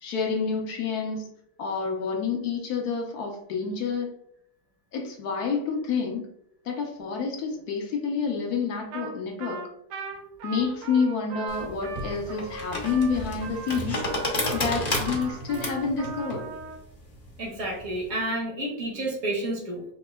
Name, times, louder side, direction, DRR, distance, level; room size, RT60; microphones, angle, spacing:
voice 1, 0.0-1.2 1.6-4.1 4.9-6.3 6.7-9.6 10.4-16.5, left 5 dB, 70° left, 1 dB, 1.2 m, -28 dB
Trumpet, 8.9-9.1 9.4-16.8, right 5 dB, 75° right, 1.3 m, -38 dB
sound 1, 11.5-18.1, left 1 dB, 35° left, 0.6 m, -32 dB
voice 2, 17.4-19.8, right 1 dB, 60° right, 0 dB, 1.3 m, -30 dB
5.2 x 2.8 x 2.2 m, 0.72 s
omnidirectional pair, 1.8 m